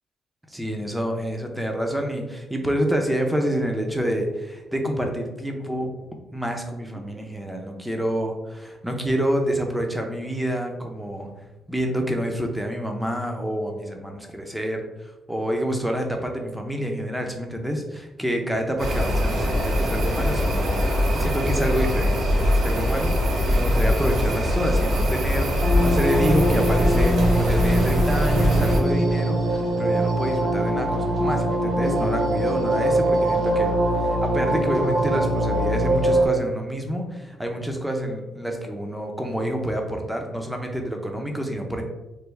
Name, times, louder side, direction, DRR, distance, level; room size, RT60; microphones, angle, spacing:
voice 1, 0.5-5.9 6.3-11.3 11.7-41.8, equal, 5° right, 2 dB, 0.6 m, -28 dB
sound 1, 18.8-28.8, left 1 dB, 75° right, 0.8 m, -22 dB
sound 2, 25.6-36.3, right 1 dB, 50° right, 1.5 m, -22 dB
3.2 x 2.2 x 3.3 m, 1.0 s
cardioid pair, 90°, 0 cm